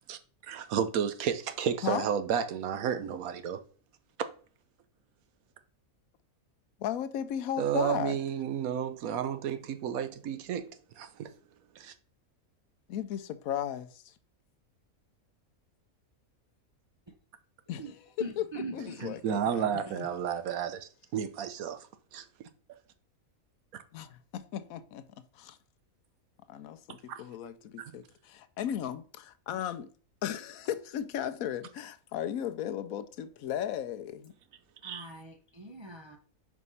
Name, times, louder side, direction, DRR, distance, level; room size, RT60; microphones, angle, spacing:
voice 1, 0.1-3.6 7.6-10.7 11.0-11.3 11.7-11.9 19.0-22.2 27.1-27.2 34.8-35.1, right 8 dB, 80° right, 1.2 m, -32 dB
voice 2, 6.8-8.2 12.9-14.1 17.7-19.7 23.9-25.1 25.3-25.6 26.5-29.9 30.2-34.3, left 10 dB, 80° left, 1.1 m, -36 dB
voice 3, 18.2-19.4 20.0-20.1 34.8-36.2, right 2 dB, 40° right, 0.3 m, -41 dB
4.9 x 4.6 x 5.5 m
omnidirectional pair, 1.5 m